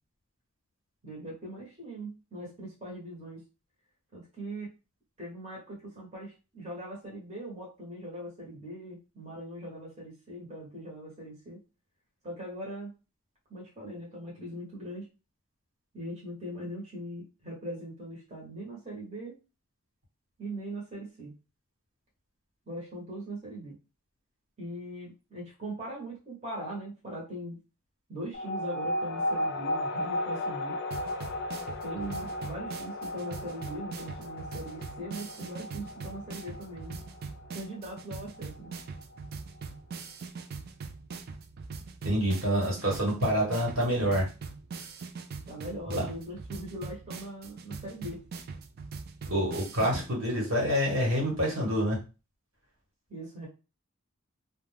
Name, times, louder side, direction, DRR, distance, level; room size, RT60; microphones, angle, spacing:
voice 1, 1.0-3.4 4.1-4.7 5.2-11.6 12.2-12.9 13.5-15.1 15.9-19.4 20.4-21.3 22.7-23.7 24.6-27.6 28.1-30.8 31.8-37.0 37.5-38.7 45.5-48.2 53.1-53.5, right 1 dB, 30° right, -5 dB, 0.9 m, -40 dB
sound 1, 28.3-39.3, left 1 dB, 50° left, 0.4 m, -35 dB
sound 2, 30.9-50.1, right 4 dB, 45° right, 0.3 m, -42 dB
voice 2, 42.0-44.3 45.9-46.1 49.3-52.0, equal, 70° right, -2 dB, 1.2 m, -27 dB
2.4 x 2.2 x 3.3 m, 0.30 s
head